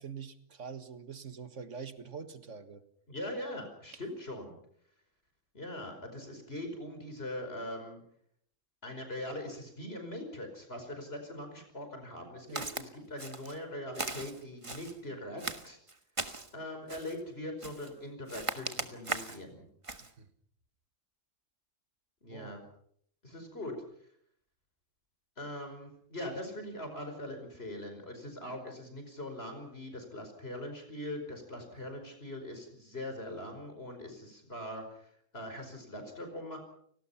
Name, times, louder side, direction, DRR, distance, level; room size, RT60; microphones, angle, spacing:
voice 1, 0.0-2.8 12.5-12.7 20.0-20.3 22.3-22.7, right 6 dB, 70° right, 10 dB, 2.0 m, -45 dB
voice 2, 3.1-4.5 5.5-8.0 8.8-15.8 16.5-19.6 22.2-22.6 23.2-23.7 25.4-36.6, left 1 dB, 50° left, 5 dB, 5.4 m, -41 dB
Walk footsteps, 12.6-12.9 13.2-13.6 13.9-15.0 15.4-16.5 16.9-17.2 17.6-17.9 18.3-19.4 19.8-20.1, right 2 dB, 25° right, 1.5 m, -38 dB
30.0 x 19.0 x 5.8 m, 0.66 s
omnidirectional pair, 1.3 m